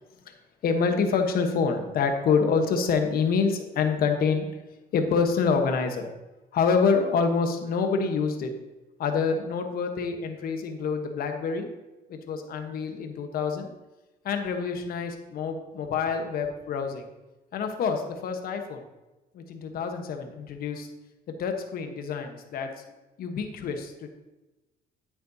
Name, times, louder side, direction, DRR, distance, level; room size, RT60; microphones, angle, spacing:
voice 1, 0.6-4.5 4.9-6.1 6.5-8.5 9.0-11.7 12.1-13.7 14.2-17.0 17.5-18.8 19.3-20.9 21.3-22.8 23.2-24.1, left 5 dB, 60° left, 5 dB, 1.2 m, -27 dB
9.8 x 8.6 x 2.8 m, 1.1 s
cardioid pair, 110°, 17 cm